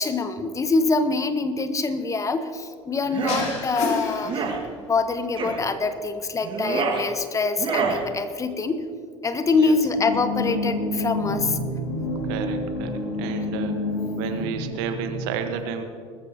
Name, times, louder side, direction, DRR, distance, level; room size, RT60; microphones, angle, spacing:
voice 1, 0.0-4.5 4.9-8.8 9.2-11.6, left 3 dB, 20° left, 10 dB, 1.0 m, -24 dB
sound 1, 3.0-3.5 4.2-4.6 5.3-5.6 6.4-7.0 7.6-8.0, right 5 dB, 35° right, 2.0 m, -26 dB
sound 2, 3.3-5.0, left 4 dB, 50° left, 2.3 m, -31 dB
sound 3, 10.0-15.2, left 2 dB, 70° left, 3.3 m, -28 dB
voice 2, 12.3-13.8 14.2-15.8, right 7 dB, 60° right, 7 dB, 1.3 m, -31 dB
20.5 x 14.0 x 2.9 m, 2.2 s
figure-of-eight pair, 70°, 14 cm